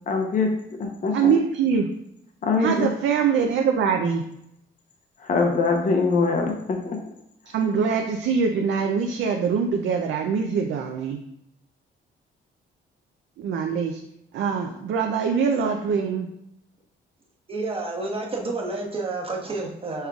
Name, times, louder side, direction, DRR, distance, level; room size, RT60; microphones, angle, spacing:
voice 1, 0.1-1.3 2.4-2.9 5.2-7.0, left 4 dB, 40° left, 2 dB, 0.7 m, -23 dB
voice 2, 1.1-1.9 2.6-4.2 7.5-11.2 13.4-14.0 14.3-16.3, right 6 dB, 70° right, 3 dB, 0.5 m, -23 dB
voice 3, 17.5-20.1, right 3 dB, 30° right, 0 dB, 1.0 m, -30 dB
5.5 x 3.5 x 2.3 m, 0.78 s
cardioid pair, 90°, 20 cm